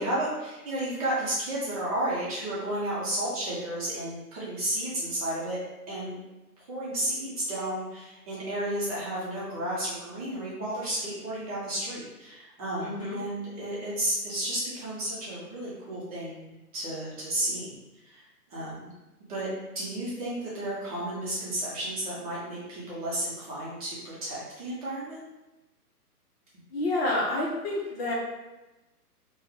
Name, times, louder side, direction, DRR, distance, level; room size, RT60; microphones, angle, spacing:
voice 1, 0.0-5.6 5.9-6.2 6.6-17.7 18.0-18.2 18.5-18.9 19.3-19.5 19.7-25.2, right 1 dB, 25° right, -8 dB, 0.8 m, -32 dB
voice 2, 12.8-13.2 26.7-28.1, left 2 dB, 40° left, -4 dB, 0.8 m, -29 dB
3.5 x 2.3 x 3.1 m, 1.0 s
hypercardioid pair, 145°, 46 cm